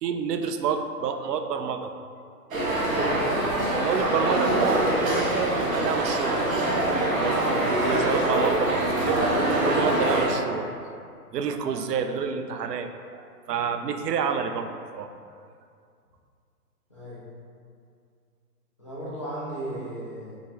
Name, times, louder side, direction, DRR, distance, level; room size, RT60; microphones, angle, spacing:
voice 1, 0.0-1.9 3.7-6.4 7.1-9.3 9.6-10.7 11.3-15.1, right 6 dB, 85° right, 7 dB, 0.5 m, -29 dB
sound 1, 2.5-10.3, right 1 dB, 60° right, 1.2 m, -24 dB
voice 2, 2.9-3.2 16.9-17.2 18.8-20.4, right 1 dB, 20° left, -10 dB, 0.5 m, -36 dB
6.0 x 2.0 x 3.5 m, 2.3 s
hypercardioid pair, 170°, 47 cm